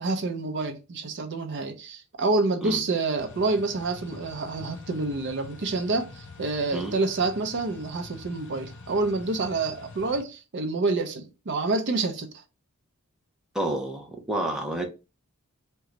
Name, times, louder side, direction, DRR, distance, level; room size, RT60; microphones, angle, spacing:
voice 1, 0.0-12.4, right 3 dB, 55° right, 0.6 m, -28 dB
sound 1, 3.2-10.2, left 3 dB, 55° left, 0.6 m, -46 dB
voice 2, 13.5-14.8, right 1 dB, 5° right, 0.6 m, -29 dB
3.7 x 2.3 x 3.0 m
head